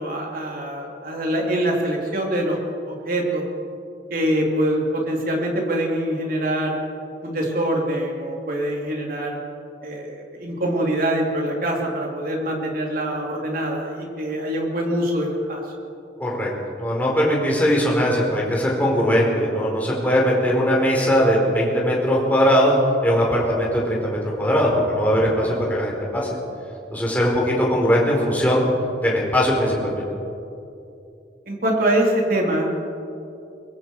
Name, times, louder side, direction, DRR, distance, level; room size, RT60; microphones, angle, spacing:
voice 1, 0.0-2.6 2.9-3.5 4.1-6.8 7.2-9.4 9.8-15.6 31.5-32.8, right 1 dB, 55° right, -1 dB, 4.0 m, -24 dB
voice 2, 16.8-26.3 26.9-28.6 29.0-30.0, equal, 10° left, -4 dB, 4.8 m, -20 dB
23.5 x 22.5 x 5.0 m, 2.7 s
head